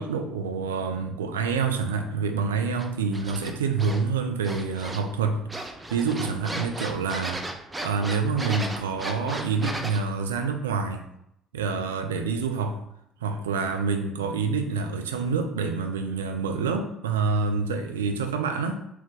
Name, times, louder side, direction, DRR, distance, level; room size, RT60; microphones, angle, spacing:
voice 1, 0.0-7.5 7.8-11.1 11.5-12.8 13.2-18.8, right 5 dB, 80° right, 6 dB, 0.4 m, -27 dB
sound 1, 2.8-4.0 4.4-5.2 5.5-10.0, right 1 dB, 15° right, 0.7 m, -35 dB
4.5 x 2.9 x 3.5 m, 0.78 s
figure-of-eight pair, 50°, 0 cm